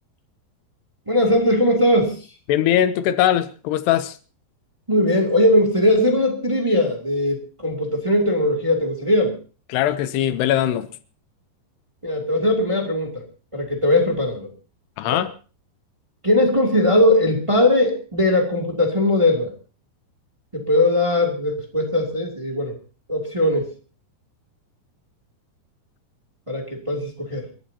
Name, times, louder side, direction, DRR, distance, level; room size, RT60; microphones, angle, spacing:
voice 1, 1.1-2.3 4.9-9.4 12.0-13.2 13.5-14.5 15.0-15.2 16.2-19.5 20.5-22.7 23.1-23.7 26.5-27.5, left 1 dB, 10° right, 1.8 m, -19 dB
voice 2, 2.5-4.1 9.7-10.9 15.0-15.3, left 11 dB, 75° left, 2.7 m, -20 dB
29.0 x 13.5 x 2.8 m
omnidirectional pair, 5.1 m